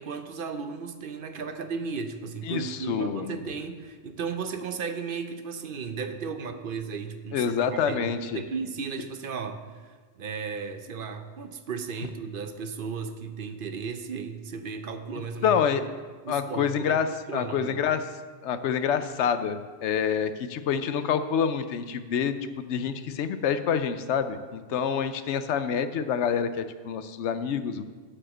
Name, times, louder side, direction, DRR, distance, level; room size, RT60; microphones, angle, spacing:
voice 1, 0.0-15.9 16.2-17.8, right 5 dB, 55° right, 8 dB, 0.8 m, -35 dB
voice 2, 2.5-3.4 7.3-8.4 15.4-15.8 16.3-18.0 18.4-22.4 22.7-27.8, left 7 dB, 90° left, 11 dB, 0.9 m, -27 dB
8.8 x 4.9 x 7.3 m, 1.4 s
omnidirectional pair, 1.1 m